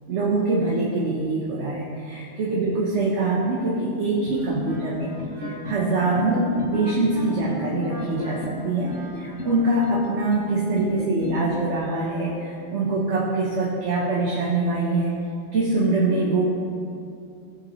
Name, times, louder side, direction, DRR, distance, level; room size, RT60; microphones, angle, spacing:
voice 1, 0.1-5.1 5.4-15.2 15.5-16.4, right 2 dB, 60° right, -4 dB, 1.3 m, -24 dB
sound 1, 4.3-4.9 5.2-5.8 6.1-6.7 7.0-7.6 8.0-8.6 8.9-9.5 9.8-10.4 10.8-11.4, left 4 dB, 70° left, 1.2 m, -35 dB
Wind instrument woodwind instrument, 4.3-9.7, equal, 20° right, 1.8 m, -38 dB
16.0 x 5.7 x 3.1 m, 2.6 s
omnidirectional pair, 1.3 m